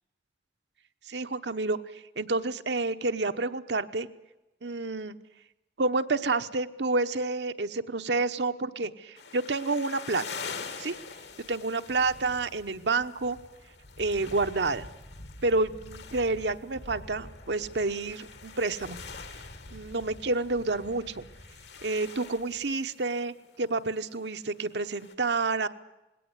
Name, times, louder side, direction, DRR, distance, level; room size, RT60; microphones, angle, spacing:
voice 1, 1.1-4.1 4.6-5.2 5.8-10.2 10.8-11.0 11.5-13.4 14.0-14.9 15.4-19.0 19.7-21.3 21.8-25.7, right 3 dB, 80° right, 9 dB, 1.1 m, -29 dB
sound 1, 9.2-25.1, left 4 dB, 75° left, 2.1 m, -45 dB
20.5 x 17.5 x 9.7 m, 1.0 s
head